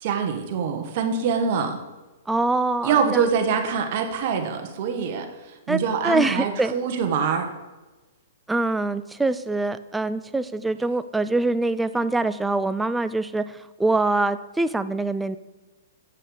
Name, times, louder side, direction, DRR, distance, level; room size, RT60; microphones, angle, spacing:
voice 1, 0.0-1.8 2.8-5.3 5.7-7.5, right 6 dB, 50° right, 5 dB, 1.4 m, -24 dB
voice 2, 2.3-3.3 5.7-6.7 8.5-13.4 13.8-15.4, right 2 dB, 5° right, 13 dB, 0.4 m, -24 dB
8.5 x 5.7 x 5.0 m, 1.1 s
hypercardioid pair, 125°, 0 cm